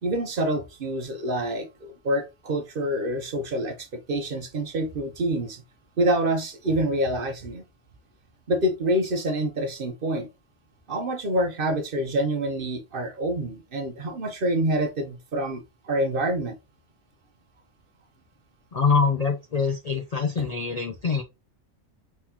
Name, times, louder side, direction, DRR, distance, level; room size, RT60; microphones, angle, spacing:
voice 1, 0.0-5.6 6.0-7.6 8.5-10.3 10.9-16.5 20.4-20.5, right 1 dB, 45° right, 0.9 m, -27 dB
voice 2, 18.7-21.2, left 5 dB, 85° left, 0.3 m, -24 dB
4.4 x 3.9 x 2.9 m
omnidirectional pair, 1.4 m